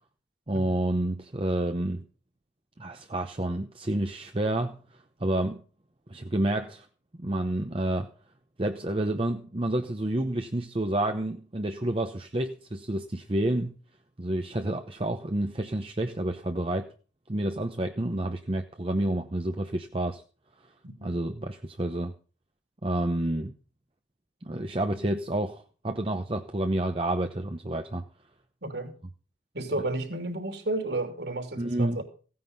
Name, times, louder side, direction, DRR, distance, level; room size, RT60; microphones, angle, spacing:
voice 1, 0.5-2.1 2.8-5.6 6.1-6.9 7.2-8.1 8.6-13.8 14.2-16.9 17.3-20.2 21.0-22.1 22.8-23.5 24.4-28.0 31.6-32.0, right 1 dB, 30° right, 6 dB, 0.8 m, -29 dB
voice 2, 28.6-28.9 29.5-32.0, right 2 dB, 60° right, 6 dB, 3.1 m, -32 dB
16.0 x 9.5 x 5.4 m, 0.38 s
head